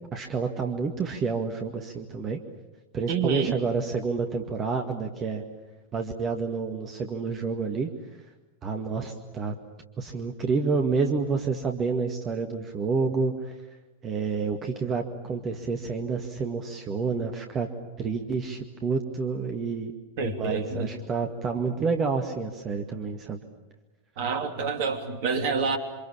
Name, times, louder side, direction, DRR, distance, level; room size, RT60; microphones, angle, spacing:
voice 1, 0.1-2.4 2.9-5.4 5.9-7.9 8.6-9.6 10.0-13.5 14.0-17.7 18.0-19.9 20.2-23.4, right 4 dB, 25° right, 4 dB, 2.0 m, -29 dB
voice 2, 3.1-3.5 20.2-21.0 24.2-25.8, right 5 dB, 50° right, 7 dB, 3.1 m, -28 dB
28.0 x 26.0 x 7.3 m, 1.1 s
figure-of-eight pair, 90°, 0 cm